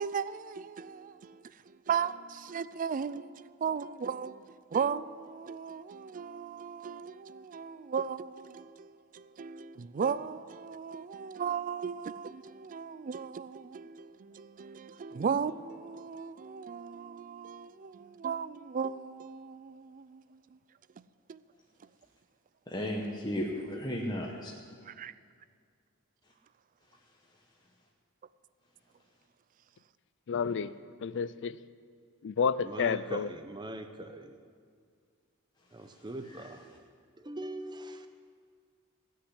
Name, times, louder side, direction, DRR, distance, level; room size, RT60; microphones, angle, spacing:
voice 1, 0.0-4.4 4.7-20.4 21.3-21.4 24.9-25.1, right 6 dB, 35° right, 0.3 m, -36 dB
voice 2, 22.7-24.5 36.3-36.4, equal, 20° left, 1.1 m, -34 dB
voice 3, 30.3-30.7 31.0-31.6 32.2-33.3, left 6 dB, 55° left, 0.4 m, -30 dB
voice 4, 32.6-34.3 35.7-36.6 37.2-38.1, right 1 dB, 20° right, 0.8 m, -41 dB
16.0 x 6.5 x 9.7 m
head